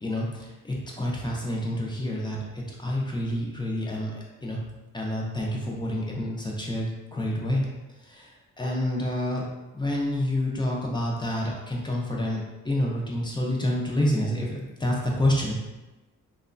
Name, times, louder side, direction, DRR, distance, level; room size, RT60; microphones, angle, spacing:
voice 1, 0.0-4.6 4.9-7.6 8.1-8.3 8.6-9.4 9.7-15.6, left 1 dB, 15° left, -3 dB, 0.5 m, -28 dB
2.9 x 2.1 x 2.5 m, 1.1 s
cardioid pair, 100°, 32 cm